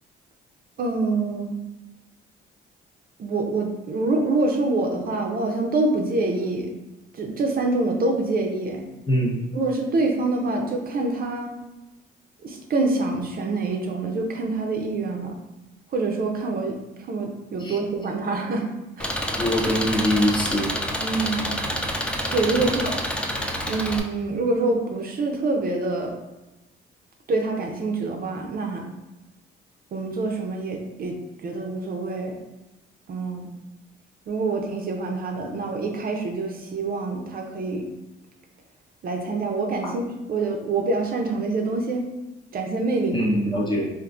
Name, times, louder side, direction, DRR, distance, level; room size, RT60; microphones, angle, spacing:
voice 1, 0.8-1.5 3.2-6.7 7.1-8.8 9.5-11.5 12.4-15.4 15.9-18.7 19.0-19.4 21.0-21.5 22.3-23.0 23.7-26.1 27.3-28.9 29.9-32.4 33.1-33.5 34.3-37.9 39.0-42.1 42.5-43.3, right 3 dB, 50° right, 2 dB, 0.5 m, -26 dB
Engine, 19.0-24.0, equal, 5° left, 0.3 m, -28 dB
voice 2, 19.4-20.7 22.6-22.7 39.8-39.9 43.1-43.9, equal, 25° left, -3 dB, 0.8 m, -23 dB
3.6 x 2.5 x 2.4 m, 1.0 s
cardioid pair, 90°, 20 cm